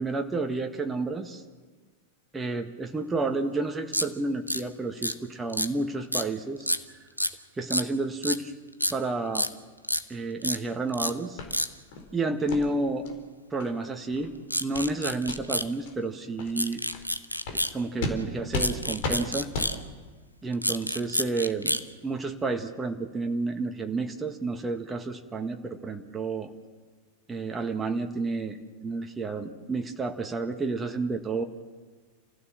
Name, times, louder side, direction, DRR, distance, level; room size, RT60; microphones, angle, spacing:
voice 1, 0.0-1.4 2.3-6.7 7.6-8.5 8.9-9.6 10.1-11.4 12.1-13.1 13.5-14.3 14.6-16.8 17.5-19.5 20.4-21.8 22.0-26.5 27.3-31.4, right 3 dB, 15° right, 4 dB, 1.7 m, -30 dB
sound 1, 3.9-4.1 4.5-4.6 5.0-5.1 5.5-5.7 6.1-6.3 6.6-6.8 7.2-7.3 7.7-7.9 8.2-8.4 8.8-8.9 9.3-9.5 9.8-10.0 10.4-10.6 10.9-11.1 11.5-11.7 14.5-15.7 16.6-17.7 18.5-19.8 20.5-21.8, equal, 90° left, 0.9 m, -28 dB
sound 2, 11.4-11.5 11.9-12.1 12.5-12.6 13.0-13.2 13.6-13.7 14.1-14.3 14.7-14.9 15.2-15.4 15.8-15.9 16.4-16.5 16.9-17.0 17.4-17.6 18.0-18.2 18.5-18.7 19.0-19.2 19.5-19.7, left 3 dB, 50° left, 4.2 m, -33 dB
29.0 x 15.5 x 7.4 m, 1.4 s
figure-of-eight pair, 90°, 0 cm